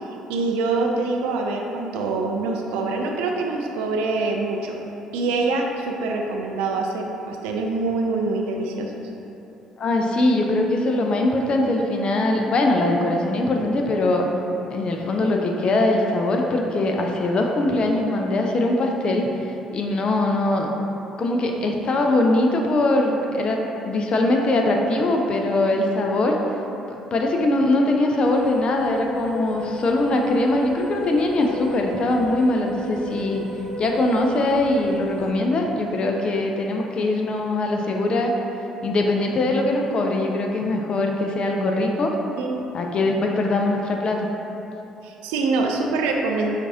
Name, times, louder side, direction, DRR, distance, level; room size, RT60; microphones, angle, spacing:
voice 1, 0.3-4.8 5.1-8.9 42.4-42.6 45.0-46.6, right 3 dB, 70° right, 1 dB, 0.3 m, -25 dB
voice 2, 9.8-14.3 14.7-19.3 19.7-20.7 21.2-26.4 27.1-33.4 33.8-38.4 38.8-42.1 42.7-44.3, left 2 dB, 45° left, 2 dB, 0.4 m, -21 dB
sound 1, 28.2-35.3, equal, 60° left, 1.0 m, -34 dB
4.6 x 2.4 x 2.7 m, 3.0 s
figure-of-eight pair, 50°, 2 cm